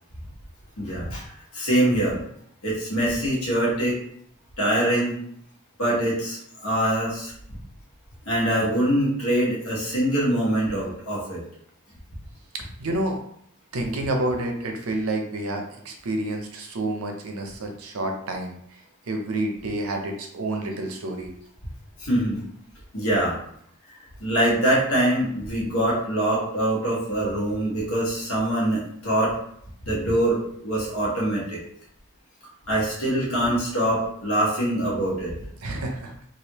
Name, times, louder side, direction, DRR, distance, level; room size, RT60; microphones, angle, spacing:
voice 1, 0.8-1.2 1.5-2.2 2.6-4.0 4.6-5.1 5.8-7.6 8.3-11.4 22.0-22.4 22.9-23.4 24.2-29.3 29.8-31.6 32.7-35.4, right 1 dB, 75° left, -5 dB, 1.4 m, -24 dB
voice 2, 12.5-13.2 13.7-21.3 35.6-36.1, right 1 dB, 70° right, 3 dB, 0.6 m, -29 dB
3.2 x 2.5 x 2.9 m, 0.68 s
head